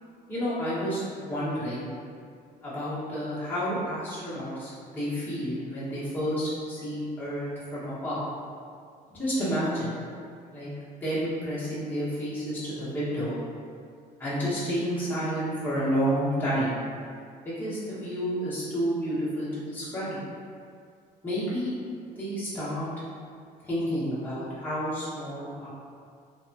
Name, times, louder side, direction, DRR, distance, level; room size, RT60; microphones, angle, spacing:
voice 1, 0.3-1.9 2.6-8.2 9.1-10.0 10.5-10.7 11.0-13.3 14.2-16.7 17.4-20.2 21.2-21.7 22.1-22.9 23.7-25.7, equal, 10° left, -11 dB, 1.1 m, -30 dB
2.7 x 2.2 x 2.7 m, 2.2 s
cardioid pair, 110°, 17 cm